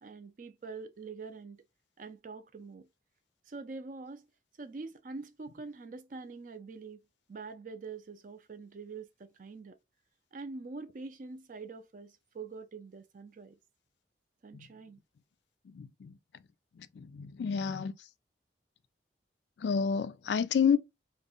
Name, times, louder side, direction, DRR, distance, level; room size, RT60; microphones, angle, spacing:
voice 1, 0.0-1.6 2.0-2.9 3.5-4.2 4.6-7.0 7.3-9.8 10.3-13.6 14.4-15.0, right 4 dB, 45° right, 0.4 m, -45 dB
voice 2, 15.7-16.1 16.8-17.9 19.6-20.8, left 6 dB, 70° left, 0.3 m, -30 dB
2.6 x 2.1 x 3.6 m
head